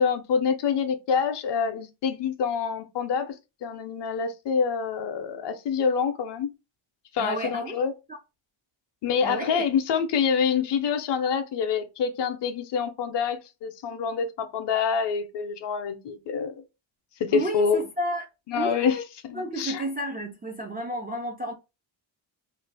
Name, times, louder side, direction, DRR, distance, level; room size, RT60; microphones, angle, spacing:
voice 1, 0.0-3.3 3.6-6.5 7.1-7.9 9.0-16.6 17.2-17.8 18.5-19.0 19.3-19.8, left 6 dB, 60° left, 0.6 m, -26 dB
voice 2, 7.2-8.2 9.2-9.7 17.3-18.2 18.5-19.0 19.3-21.5, right 1 dB, 20° right, 0.3 m, -31 dB
2.5 x 2.3 x 3.3 m
wide cardioid pair, 145°, 48 cm